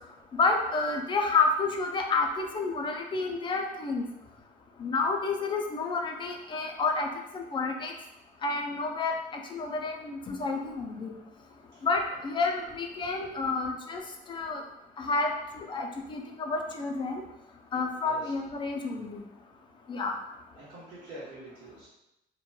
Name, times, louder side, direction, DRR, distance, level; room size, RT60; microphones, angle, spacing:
voice 1, 0.3-4.0 4.8-7.1 7.3-7.9 8.4-9.1 9.5-11.1 11.8-14.0 14.3-14.6 15.0-15.3 15.6-17.2 17.7-19.2 19.9-20.2, left 3 dB, 30° left, 3 dB, 0.4 m, -29 dB
voice 2, 20.6-21.9, right 1 dB, 75° right, -9 dB, 1.0 m, -46 dB
2.9 x 2.2 x 2.2 m, 0.91 s
cardioid pair, 110°, 17 cm